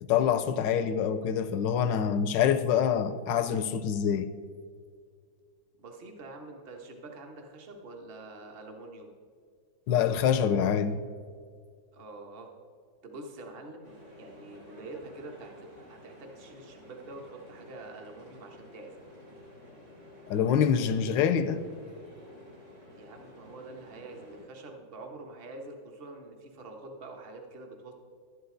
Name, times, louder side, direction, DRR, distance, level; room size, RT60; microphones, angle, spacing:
voice 1, 0.0-4.3 9.9-11.0 20.3-21.6, left 8 dB, 75° left, 1.2 m, -26 dB
voice 2, 5.8-9.1 11.9-12.5 13.0-19.0 22.9-27.9, right 2 dB, 35° right, 1.2 m, -46 dB
sound 1, 13.8-24.5, left 1 dB, 60° right, 3.7 m, -51 dB
12.0 x 10.5 x 3.8 m
omnidirectional pair, 2.2 m